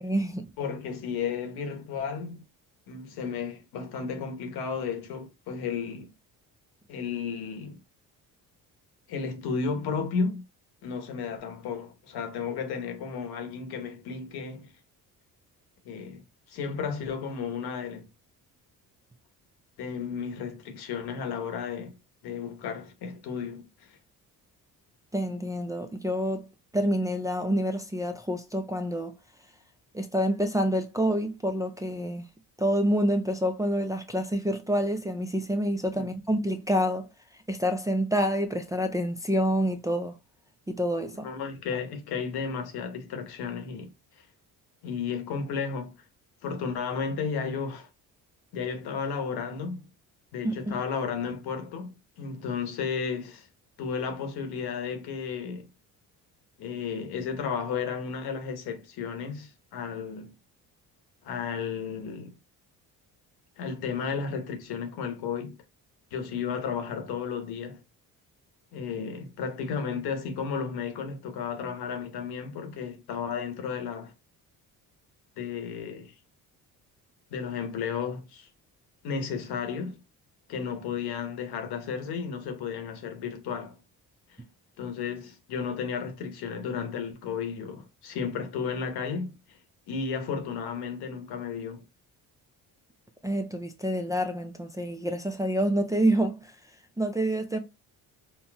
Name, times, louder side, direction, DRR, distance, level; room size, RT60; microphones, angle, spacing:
voice 1, 0.0-0.5 25.1-29.1 29.9-32.3 32.6-37.1 37.5-40.2 40.7-41.3 50.4-50.8 93.2-96.6 97.0-97.6, equal, 10° right, 0.3 m, -27 dB
voice 2, 0.6-2.4 2.9-6.1 6.9-7.8 9.1-10.4 10.8-14.7 15.8-18.1 19.8-22.0 22.2-24.0 35.9-36.1 41.2-44.3 44.8-45.9 46.4-47.9 48.5-49.9 50.3-53.5 53.8-55.7 56.6-60.3 61.2-62.4 63.6-65.6 66.1-67.8 68.7-74.1 75.4-76.1 77.3-78.5 79.0-80.0 80.5-83.8 84.8-89.6 89.9-91.8, left 6 dB, 80° left, 1.0 m, -33 dB
4.1 x 2.0 x 2.2 m
cardioid pair, 80°, 38 cm